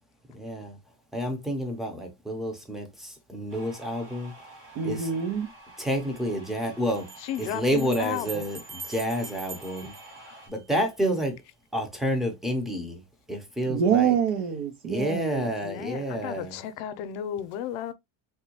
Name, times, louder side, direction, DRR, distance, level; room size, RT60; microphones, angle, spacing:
voice 1, 0.3-0.8 1.1-4.3 4.8-5.1 5.8-7.1 7.4-9.9 10.5-11.4 11.7-13.0 13.3-14.1 14.8-16.5, equal, ahead, 0.4 m, -29 dB
sound 1, 3.5-10.5, right 2 dB, 60° right, 2.4 m, -49 dB
voice 2, 4.7-5.5 13.7-15.5, right 7 dB, 90° right, 1.0 m, -26 dB
Bell, 5.3-5.4 6.9-10.9, right 3 dB, 40° right, 0.8 m, -44 dB
voice 3, 7.2-8.4 10.2-10.4 15.6-17.9, left 10 dB, 75° left, 0.6 m, -34 dB
3.6 x 2.2 x 2.7 m
cardioid pair, 160°, 41 cm